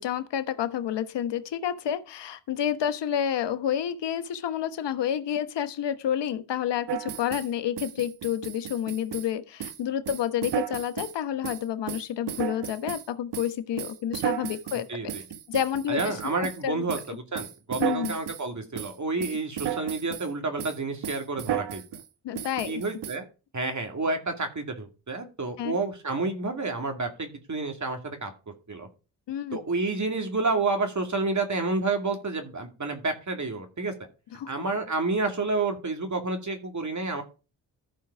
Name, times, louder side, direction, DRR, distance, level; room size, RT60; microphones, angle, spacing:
voice 1, 0.0-15.1 15.5-16.2 16.6-16.8 17.8-18.2 22.2-22.8 25.6-25.8 29.3-29.6 34.3-34.5, left 9 dB, 65° left, 1.1 m, -29 dB
sound 1, 6.9-7.5 7.8-9.3 9.6-9.8 10.1-11.2 11.4-13.1 13.3-16.6 16.9-17.1 17.4-18.4 18.8-18.9 19.2-20.3 20.6-20.8 21.0-22.1 22.4-23.2, right 10 dB, 65° right, 1.0 m, -34 dB
voice 2, 14.9-15.2 15.9-21.8 22.7-23.3 23.5-28.3 28.7-28.9 29.5-33.9 34.5-37.2, right 3 dB, 40° right, 2.5 m, -29 dB
14.0 x 4.7 x 4.8 m
hypercardioid pair, 40°, 45 cm